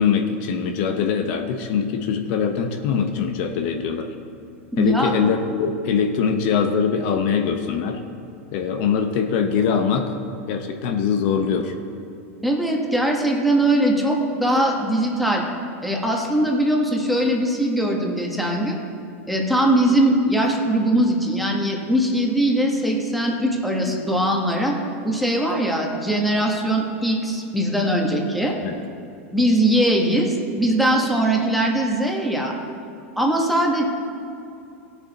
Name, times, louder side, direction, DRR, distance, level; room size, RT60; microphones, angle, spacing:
voice 1, 0.0-4.1 4.8-8.0 8.5-10.2 10.5-11.7 28.6-28.8, left 6 dB, 55° left, 5 dB, 0.9 m, -22 dB
voice 2, 4.7-5.1 12.4-15.4 15.8-18.8 19.3-24.8 25.0-28.6 29.3-32.5 33.2-33.8, right 1 dB, ahead, -1 dB, 1.4 m, -21 dB
17.0 x 7.1 x 4.2 m, 2.6 s
supercardioid pair, 135°, 7 cm